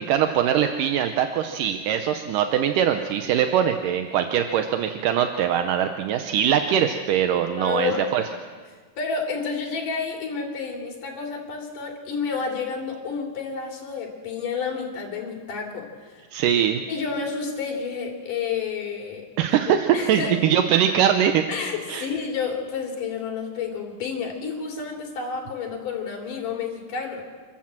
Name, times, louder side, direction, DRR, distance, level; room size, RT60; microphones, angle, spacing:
voice 1, 0.0-8.2 16.3-16.8 19.4-21.4 21.9-22.1, right 9 dB, 80° right, 7 dB, 2.4 m, -22 dB
voice 2, 7.6-8.1 9.0-16.2 16.9-19.2 19.9-20.3 21.5-27.2, left 5 dB, 75° left, 1 dB, 4.6 m, -30 dB
27.0 x 13.5 x 7.6 m, 1.5 s
omnidirectional pair, 3.8 m